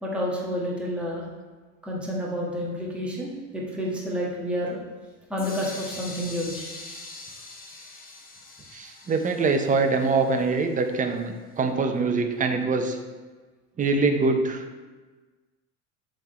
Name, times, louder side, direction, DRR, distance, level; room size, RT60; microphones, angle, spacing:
voice 1, 0.0-1.2 1.8-4.8 5.3-6.7, equal, 5° right, -4 dB, 1.5 m, -29 dB
sound 1, 5.4-11.2, left 3 dB, 25° left, 1.0 m, -43 dB
voice 2, 8.7-13.0 13.8-14.6, right 4 dB, 20° right, 6 dB, 0.6 m, -24 dB
7.6 x 3.8 x 4.2 m, 1.3 s
supercardioid pair, 110°, 38 cm